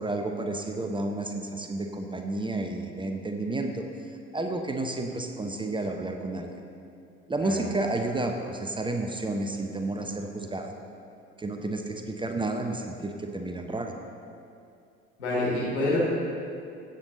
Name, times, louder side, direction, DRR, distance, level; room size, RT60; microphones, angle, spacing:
voice 1, 0.0-3.9 4.3-6.6 7.3-10.7 11.4-13.9, right 2 dB, 15° right, 4 dB, 0.9 m, -31 dB
voice 2, 15.2-16.0, left 2 dB, 80° left, -6 dB, 3.1 m, -27 dB
15.5 x 8.1 x 3.8 m, 2.5 s
figure-of-eight pair, 55°, 33 cm